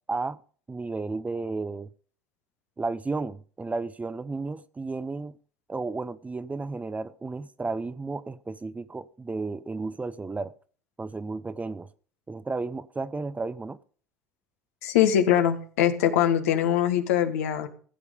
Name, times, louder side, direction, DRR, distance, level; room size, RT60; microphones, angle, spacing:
voice 1, 0.1-0.4 0.7-1.9 2.8-5.3 5.7-10.5 11.0-11.9 12.3-13.8, right 3 dB, 15° right, 0.8 m, -33 dB
voice 2, 14.8-17.7, left 10 dB, 75° left, 1.6 m, -22 dB
15.5 x 8.2 x 5.2 m
hypercardioid pair, 70°, 8 cm